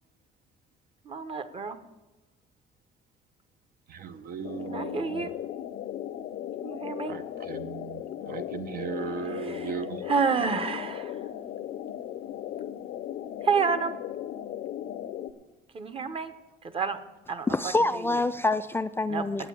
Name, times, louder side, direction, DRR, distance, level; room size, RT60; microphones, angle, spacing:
voice 1, 1.0-1.8 4.6-5.3 6.6-7.1 9.3-9.7 10.0-11.2 13.4-13.9 15.7-16.3 16.6-17.0 17.3-17.7 18.1-18.2 19.1-19.2, right 5 dB, 35° right, 10 dB, 1.0 m, -29 dB
voice 2, 3.9-5.3 7.1-10.0, right 6 dB, 60° right, 10 dB, 0.8 m, -37 dB
sound 1, 4.4-15.3, left 11 dB, 65° left, 0.6 m, -37 dB
voice 3, 17.5-19.5, left 2 dB, 15° left, 10 dB, 0.3 m, -26 dB
9.1 x 8.2 x 8.7 m, 1.1 s
cardioid pair, 110°, 17 cm